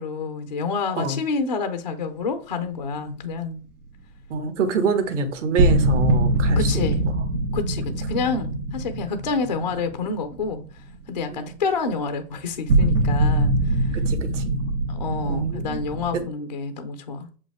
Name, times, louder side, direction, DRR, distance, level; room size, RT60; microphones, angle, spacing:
voice 1, 0.0-3.6 6.6-7.0 7.5-10.7 11.1-13.9 14.9-17.3, left 4 dB, 30° left, 0.3 m, -28 dB
voice 2, 4.3-7.2 8.3-8.6 11.3-11.5 13.9-14.6 15.3-15.8 16.1-16.3, right 4 dB, 50° right, 1.5 m, -26 dB
sound 1, 5.6-10.7 10.9-11.0 12.7-16.2, right 1 dB, 70° right, 1.9 m, -22 dB
7.0 x 5.2 x 3.4 m
hypercardioid pair, 150°, 48 cm